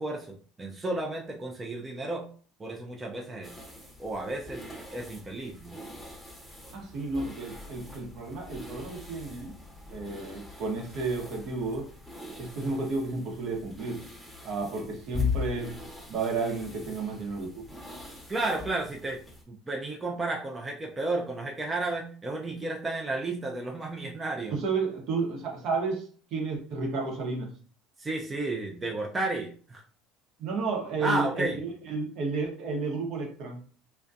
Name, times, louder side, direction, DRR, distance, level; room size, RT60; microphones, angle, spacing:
voice 1, 0.0-2.3 2.6-3.5 4.0-4.6 4.9-5.7 18.3-19.2 19.5-24.6 28.0-29.8 31.0-31.6, right 2 dB, 20° right, 0 dB, 0.5 m, -32 dB
sound 1, 3.4-19.4, left 4 dB, ahead, 0.8 m, -41 dB
voice 2, 6.7-9.6 9.9-11.9 12.4-14.0 14.4-15.7 16.1-17.6 24.5-26.0 26.3-27.5 30.4-33.6, right 3 dB, 60° right, 0 dB, 0.8 m, -32 dB
2.4 x 2.1 x 2.6 m, 0.42 s
hypercardioid pair, 80°, 0 cm